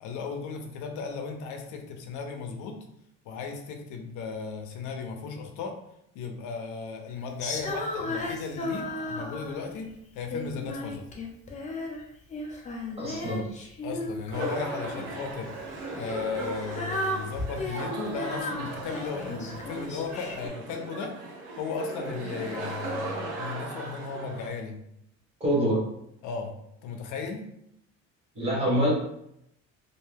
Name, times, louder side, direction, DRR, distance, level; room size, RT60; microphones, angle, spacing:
voice 1, 0.0-2.8 3.2-5.8 6.1-9.9 10.1-11.1 13.8-15.5 15.9-21.1 21.6-24.8 26.2-26.5 26.8-27.4, left 5 dB, 80° left, 4 dB, 0.5 m, -35 dB
Female singing, 7.4-9.8 10.3-12.0 12.3-15.1 15.9-20.5, left 2 dB, 25° left, 0.4 m, -35 dB
voice 2, 13.0-13.4 25.4-25.8 28.3-28.9, equal, 20° right, -4 dB, 0.9 m, -25 dB
sound 1, 14.3-24.5, right 2 dB, 75° right, 0.7 m, -37 dB
2.5 x 2.2 x 3.2 m, 0.78 s
cardioid pair, 155°, 29 cm